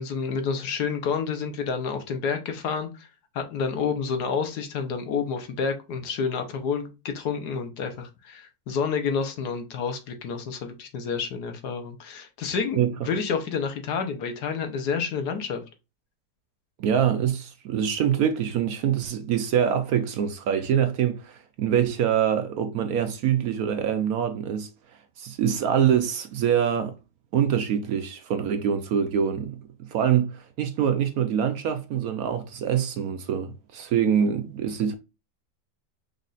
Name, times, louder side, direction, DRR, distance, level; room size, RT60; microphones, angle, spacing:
voice 1, 0.0-3.1 3.3-15.6, left 6 dB, 70° left, 1.4 m, -29 dB
voice 2, 16.8-24.7 25.2-27.0 27.3-29.6 29.9-34.9, right 8 dB, 70° right, 1.0 m, -24 dB
5.2 x 2.5 x 3.9 m
omnidirectional pair, 1.8 m